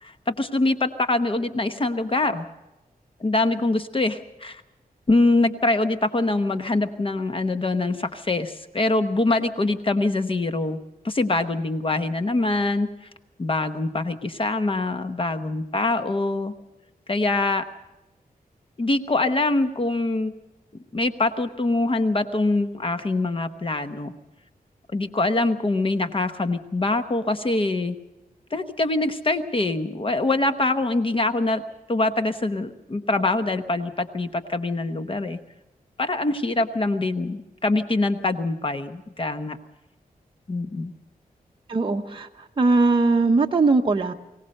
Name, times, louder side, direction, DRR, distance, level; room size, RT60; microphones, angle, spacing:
voice 1, 0.0-2.5 3.2-4.6 5.1-10.8 11.0-12.9 13.4-16.5 17.1-17.6 18.8-20.3 20.9-24.1 24.9-28.0 28.5-31.6 31.9-35.4 36.0-39.6 40.5-40.9, left 2 dB, 35° left, 1.0 m, -24 dB
voice 2, 41.7-42.3 42.6-44.1, right 3 dB, 35° right, 0.9 m, -20 dB
23.5 x 17.5 x 6.5 m
wide cardioid pair, 135°, 16 cm